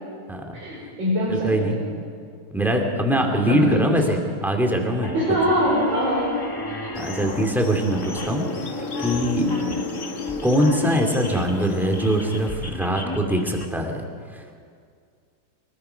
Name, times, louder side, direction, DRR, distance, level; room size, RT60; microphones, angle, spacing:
voice 1, 0.5-1.8 3.4-3.9 5.1-6.3 6.7-6.9 9.4-9.8, equal, 60° right, -6 dB, 5.7 m, -24 dB
voice 2, 1.3-1.8 2.5-5.1 7.0-8.7 9.0-9.6 10.4-14.0 14.3-14.6, equal, ahead, 3 dB, 2.3 m, -22 dB
sound 1, 5.0-13.7, left 1 dB, 20° left, 0.6 m, -35 dB
sound 2, 6.9-12.5, left 4 dB, 40° left, 1.5 m, -33 dB
24.5 x 21.0 x 5.8 m, 2.1 s
omnidirectional pair, 2.4 m